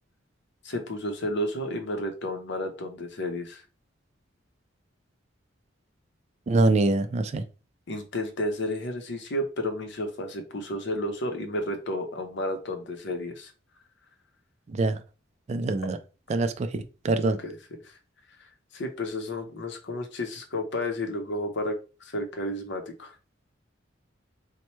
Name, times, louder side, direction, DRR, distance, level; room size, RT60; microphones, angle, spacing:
voice 1, 0.6-3.6 7.9-13.5 17.2-17.6 17.8-18.0 18.7-23.2, left 1 dB, 65° left, 5 dB, 0.7 m, -32 dB
voice 2, 6.5-7.4 14.7-15.0 15.5-16.0 16.3-17.4, right 2 dB, 35° right, 9 dB, 0.3 m, -24 dB
4.2 x 2.1 x 3.1 m, 0.33 s
head